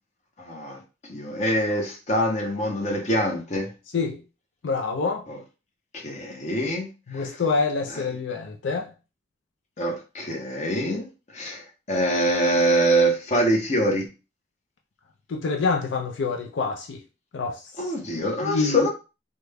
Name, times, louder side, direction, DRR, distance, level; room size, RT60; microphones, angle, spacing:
voice 1, 0.4-0.8 1.1-3.7 5.3-5.4 5.9-7.3 7.9-8.1 9.8-14.1 17.8-18.9, right 1 dB, 35° left, 0.7 m, -25 dB
voice 2, 4.6-5.2 7.1-8.9 15.3-17.0 17.3-17.6 18.4-18.9, left 4 dB, 75° left, 0.4 m, -26 dB
3.4 x 2.1 x 3.3 m
head